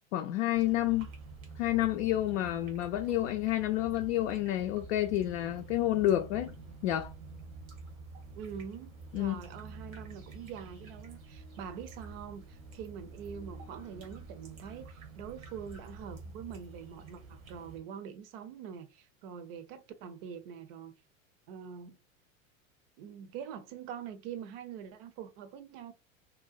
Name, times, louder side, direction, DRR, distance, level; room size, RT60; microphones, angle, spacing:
voice 1, 0.1-1.1 1.6-6.5 6.8-7.1 9.1-9.4, left 14 dB, 60° left, 0.5 m, -29 dB
sound 1, 0.5-17.8, right 3 dB, 75° right, 0.9 m, -48 dB
voice 2, 8.4-20.9 21.5-22.0 23.0-25.9, right 8 dB, 45° right, 0.6 m, -44 dB
2.8 x 2.1 x 2.4 m
figure-of-eight pair, 85°, 40 cm